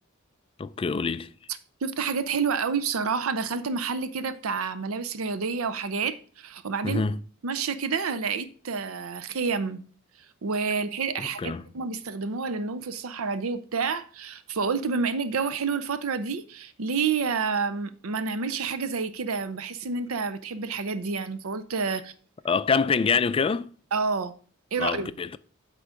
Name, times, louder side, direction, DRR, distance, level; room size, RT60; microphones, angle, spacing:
voice 1, 0.6-1.3 6.8-7.2 11.2-11.7 22.4-23.7 24.8-25.4, left 5 dB, 25° left, 0.3 m, -26 dB
voice 2, 1.8-7.0 7.4-9.8 10.2-22.1 23.9-24.3 24.7-25.1, right 5 dB, 90° right, 0.6 m, -29 dB
8.1 x 3.8 x 6.2 m
head